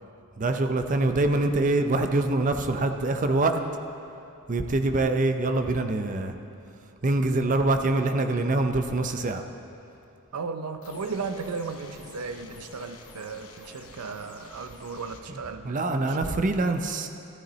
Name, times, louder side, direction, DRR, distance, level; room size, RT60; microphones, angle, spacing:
voice 1, 0.4-3.6 4.5-6.3 7.0-9.4 15.6-17.1, right 2 dB, 35° right, 7 dB, 0.5 m, -24 dB
voice 2, 10.3-15.8 16.1-16.5, right 4 dB, 90° right, 8 dB, 0.6 m, -35 dB
sound 1, 10.8-15.2, left 3 dB, 70° left, 1.1 m, -49 dB
14.0 x 11.5 x 3.1 m, 2.7 s
head